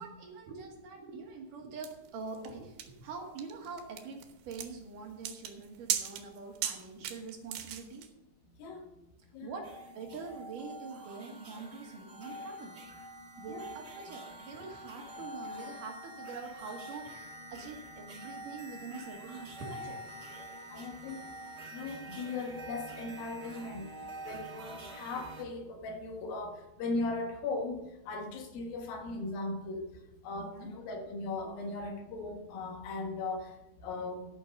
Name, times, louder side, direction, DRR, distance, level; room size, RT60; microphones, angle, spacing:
voice 1, 0.0-4.2 4.5-8.0 9.4-9.7 9.9-12.8 13.4-20.0 30.4-30.7 31.4-31.5, right 4 dB, 65° right, 1 dB, 3.0 m, -44 dB
sound 1, 1.8-8.1, right 10 dB, 85° right, 2.9 m, -38 dB
sound 2, 9.6-25.4, right 1 dB, 40° right, 1.7 m, -46 dB
voice 2, 20.7-21.2 21.7-23.8 24.3-27.8 28.1-29.8 30.2-33.5 33.8-34.3, left 3 dB, 75° left, 3 dB, 3.2 m, -38 dB
13.0 x 6.3 x 6.5 m, 0.92 s
omnidirectional pair, 4.3 m